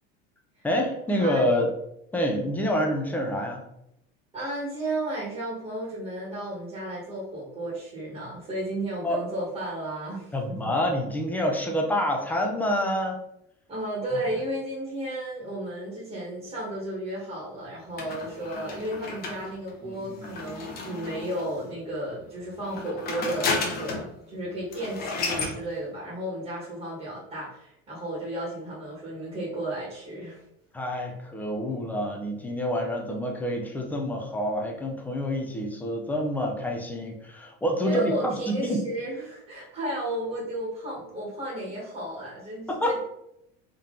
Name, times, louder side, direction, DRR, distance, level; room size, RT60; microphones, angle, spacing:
voice 1, 0.6-1.7 2.1-3.6 9.0-9.2 10.3-13.2 19.8-20.3 30.7-38.8 42.7-43.0, equal, 5° left, 1 dB, 0.4 m, -27 dB
voice 2, 1.2-1.6 4.3-10.3 13.7-30.4 37.8-43.0, right 1 dB, 20° right, -5 dB, 1.2 m, -33 dB
sound 1, 18.0-21.6 22.6-24.1 24.4-24.5 24.7-25.6, left 3 dB, 30° left, 0.8 m, -33 dB
3.7 x 2.8 x 3.7 m, 0.80 s
cardioid pair, 170°, 30 cm